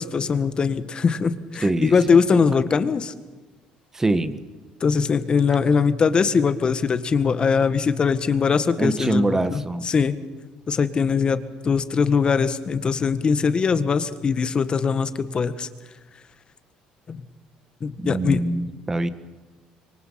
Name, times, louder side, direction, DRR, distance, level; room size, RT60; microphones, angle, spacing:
voice 1, 0.0-3.1 4.8-10.1 10.7-15.7 17.1-17.2 17.8-18.4, left 5 dB, 35° left, 11 dB, 1.7 m, -21 dB
voice 2, 1.6-2.2 3.9-4.4 8.8-9.9 18.0-19.1, right 2 dB, 15° right, 11 dB, 1.8 m, -24 dB
26.0 x 24.0 x 5.9 m, 1.3 s
supercardioid pair, 95°, 3 cm